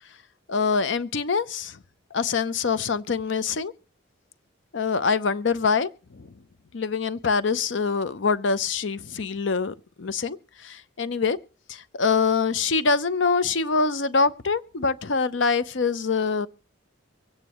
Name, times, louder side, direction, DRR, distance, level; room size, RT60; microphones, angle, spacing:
voice 1, 0.5-1.8 2.1-3.7 4.7-6.3 6.7-11.4 11.7-16.5, left 5 dB, 65° left, 0.7 m, -25 dB
24.5 x 8.9 x 3.0 m
head